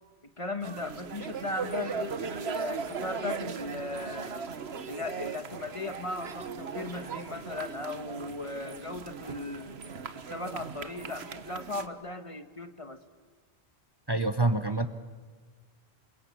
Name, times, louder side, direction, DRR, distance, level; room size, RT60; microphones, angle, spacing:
voice 1, 0.4-4.4 4.9-9.8 10.3-13.0, left 2 dB, 30° left, 8 dB, 1.4 m, -37 dB
sound 1, 0.6-11.9, right 5 dB, 70° right, 1.4 m, -38 dB
voice 2, 14.1-14.9, right 2 dB, 25° right, 9 dB, 0.9 m, -26 dB
28.5 x 22.5 x 8.5 m, 1.5 s
omnidirectional pair, 1.1 m